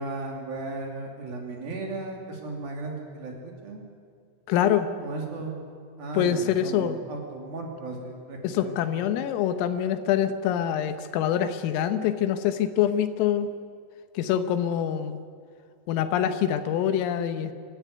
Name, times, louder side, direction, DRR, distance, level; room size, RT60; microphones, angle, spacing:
voice 1, 0.0-3.8 5.0-5.6 6.0-8.8, right 3 dB, 50° right, 0 dB, 4.1 m, -35 dB
voice 2, 4.5-4.9 6.1-7.0 8.4-13.5 14.2-15.2 15.9-17.5, left 10 dB, 90° left, 9 dB, 3.8 m, -25 dB
24.5 x 14.0 x 9.7 m, 2.2 s
omnidirectional pair, 5.8 m